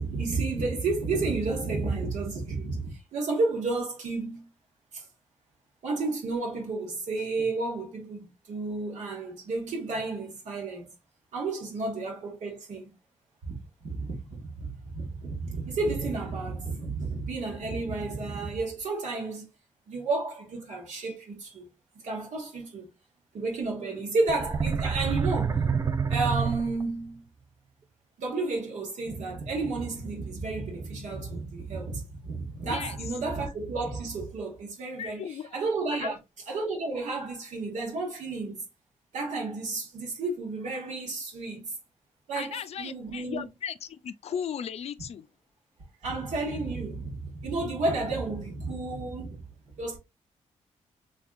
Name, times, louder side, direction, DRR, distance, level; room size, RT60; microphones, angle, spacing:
voice 1, 0.0-4.5 4.9-5.0 5.8-10.9 11.3-12.9 13.4-19.5 19.9-21.7 22.0-22.9 23.3-25.6 26.1-27.3 28.2-35.2 35.5-36.2 36.5-38.6 39.1-41.7 42.3-43.5 46.0-49.5 49.8-50.0, right 3 dB, 75° right, 1.7 m, -31 dB
sound 1, 24.3-27.1, right 6 dB, 25° right, 0.4 m, -27 dB
voice 2, 32.6-33.0 35.0-35.6 36.0-36.2 42.3-45.3, left 8 dB, 60° left, 0.4 m, -36 dB
3.5 x 3.3 x 2.5 m
cardioid pair, 100°, 12 cm